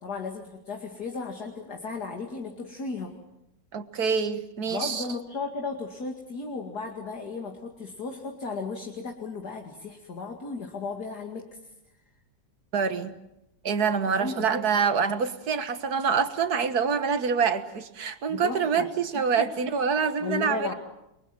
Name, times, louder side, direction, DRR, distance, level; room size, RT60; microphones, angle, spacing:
voice 1, 0.0-3.1 4.7-11.5 14.1-14.4 18.3-19.5 20.0-20.7, left 4 dB, 60° left, 2 dB, 2.8 m, -35 dB
voice 2, 3.7-5.0 12.7-13.1 13.6-20.7, right 6 dB, 55° right, 10 dB, 2.0 m, -26 dB
29.5 x 23.0 x 7.6 m, 0.87 s
omnidirectional pair, 2.0 m